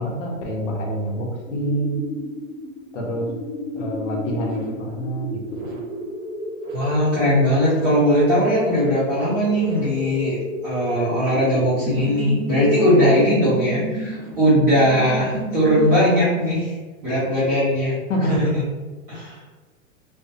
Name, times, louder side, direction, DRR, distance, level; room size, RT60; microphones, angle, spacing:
voice 1, 0.0-2.0 2.9-3.3 3.8-5.7 18.1-18.4, right 1 dB, 60° left, -1 dB, 0.8 m, -26 dB
sound 1, 1.4-16.3, right 1 dB, 85° right, 0.9 m, -32 dB
voice 2, 6.7-10.4 10.6-16.7 17.0-18.0 18.3-18.6 19.1-19.4, equal, 10° right, -14 dB, 0.4 m, -19 dB
2.5 x 2.1 x 2.5 m, 1.3 s
hypercardioid pair, 155°, 41 cm